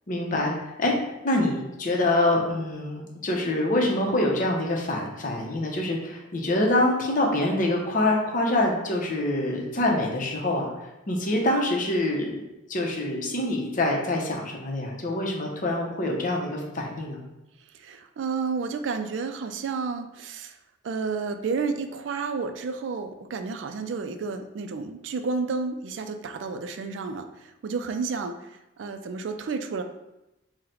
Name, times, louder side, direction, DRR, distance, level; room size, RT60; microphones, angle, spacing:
voice 1, 0.1-0.9 1.2-10.7 11.1-12.4 12.7-17.2, left 1 dB, 45° left, 0 dB, 0.7 m, -25 dB
voice 2, 17.7-20.6 20.8-28.4 28.8-29.8, right 4 dB, 75° right, 8 dB, 0.3 m, -31 dB
3.8 x 2.1 x 4.3 m, 0.94 s
head